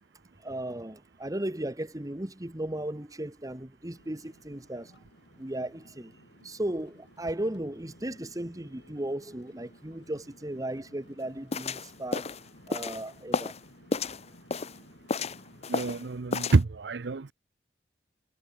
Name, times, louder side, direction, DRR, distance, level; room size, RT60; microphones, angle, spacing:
voice 1, 0.4-4.9 5.4-6.1 6.4-12.3 12.7-13.5, right 1 dB, 20° right, 1.4 m, -36 dB
sound 1, 3.8-16.1, left 1 dB, 70° left, 4.1 m, -56 dB
sound 2, 11.5-13.6 13.9-14.8 15.1-16.0 16.3-16.6, left 4 dB, 35° left, 0.8 m, -32 dB
voice 2, 15.7-17.3, right 3 dB, 70° right, 0.6 m, -27 dB
head